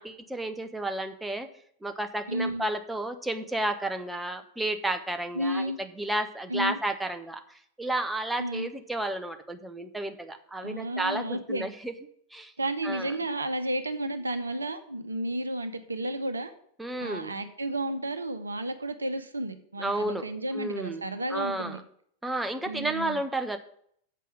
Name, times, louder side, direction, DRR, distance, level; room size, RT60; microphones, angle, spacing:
voice 1, 0.0-1.5 1.8-11.9 12.3-12.5 12.8-13.2 16.8-17.3 19.8-20.3 20.5-21.0 21.3-21.8 22.2-23.6, right 1 dB, 5° right, 7 dB, 0.7 m, -32 dB
voice 2, 2.3-2.6 5.3-5.8 6.5-6.8 8.4-8.7 10.6-11.7 12.6-16.5 17.0-21.8 22.7-23.2, right 1 dB, 75° right, 9 dB, 0.7 m, -32 dB
7.5 x 5.6 x 7.4 m, 0.65 s
figure-of-eight pair, 90°, 0 cm